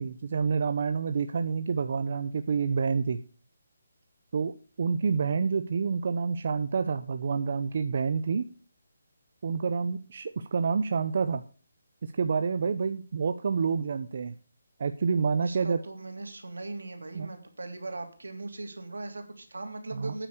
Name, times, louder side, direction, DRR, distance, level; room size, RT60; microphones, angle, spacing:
voice 1, 0.0-3.2 4.3-8.5 9.4-11.4 12.0-14.3 14.8-15.8 17.1-17.3 19.9-20.1, right 5 dB, 55° right, 9 dB, 0.8 m, -28 dB
voice 2, 15.4-20.3, right 2 dB, 85° right, 5 dB, 3.1 m, -39 dB
9.1 x 8.6 x 6.6 m, 0.37 s
hypercardioid pair, 160°, 0 cm